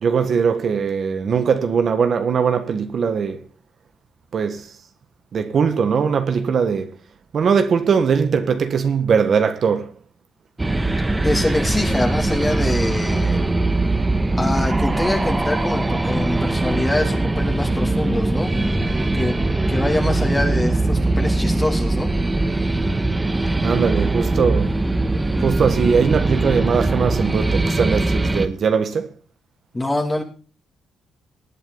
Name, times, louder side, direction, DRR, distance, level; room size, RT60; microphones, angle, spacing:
voice 1, 0.0-3.4 4.3-4.6 5.3-6.9 7.3-9.9 23.6-24.7 25.4-29.1, right 6 dB, 55° right, 1.4 m, -20 dB
sound 1, 10.6-28.5, right 2 dB, 15° right, 1.5 m, -21 dB
voice 2, 11.2-13.4 14.4-18.6 19.1-19.4 19.7-22.1 29.7-30.2, left 1 dB, 15° left, 2.7 m, -24 dB
19.0 x 8.8 x 4.0 m
cardioid pair, 90°, 0 cm